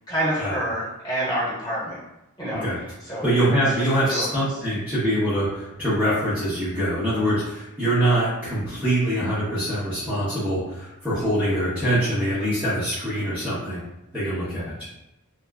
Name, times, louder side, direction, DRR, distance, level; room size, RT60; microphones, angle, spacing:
voice 1, 0.1-2.0 2.4-3.3 3.8-4.3, right 1 dB, 15° left, -9 dB, 1.3 m, -28 dB
voice 2, 3.2-13.8 14.1-14.9, right 1 dB, 5° right, -12 dB, 0.8 m, -24 dB
3.3 x 2.9 x 2.3 m, 0.91 s
head